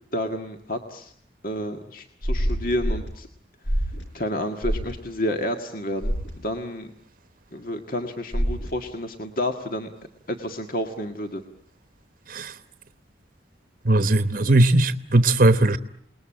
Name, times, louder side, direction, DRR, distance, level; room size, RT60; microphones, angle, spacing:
voice 1, 0.1-1.1 1.4-3.3 4.1-6.9 7.5-9.9 10.3-11.4, left 1 dB, 50° left, 1.8 m, -30 dB
sound 1, 2.2-3.1 3.7-4.0 4.6-4.9 6.0-6.3 8.3-8.7, equal, 90° left, 4.8 m, -25 dB
voice 2, 13.9-15.8, right 2 dB, 50° right, 1.0 m, -18 dB
28.5 x 20.0 x 8.8 m
head